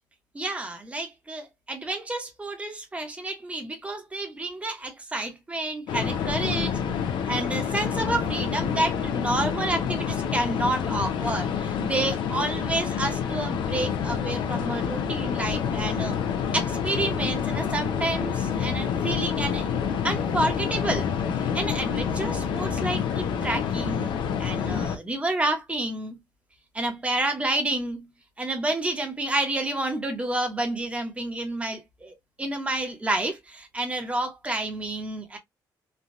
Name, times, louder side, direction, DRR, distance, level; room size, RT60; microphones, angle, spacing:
voice 1, 0.3-6.8 7.3-16.2 16.5-19.7 20.0-21.1 21.4-26.2 26.7-28.1 28.4-35.4, right 2 dB, 15° right, 1.0 m, -29 dB
sound 1, 5.9-25.0, left 7 dB, 80° left, 0.7 m, -28 dB
3.3 x 2.3 x 2.6 m
cardioid pair, 130°, 8 cm